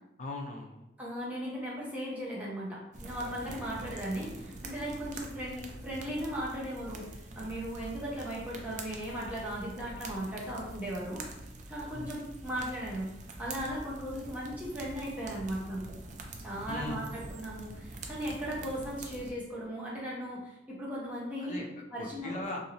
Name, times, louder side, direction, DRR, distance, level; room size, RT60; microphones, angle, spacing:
voice 1, 0.2-0.9 3.4-3.6 11.9-12.2 16.7-17.2 21.4-22.6, left 2 dB, 40° left, 1 dB, 0.4 m, -40 dB
voice 2, 1.0-7.1 7.4-11.2 11.7-13.1 13.4-16.0 16.4-21.6 21.9-22.4, equal, 10° right, -6 dB, 0.7 m, -37 dB
sound 1, 2.9-19.3, right 2 dB, 40° right, 0.3 m, -45 dB
2.7 x 2.6 x 2.8 m, 0.87 s
head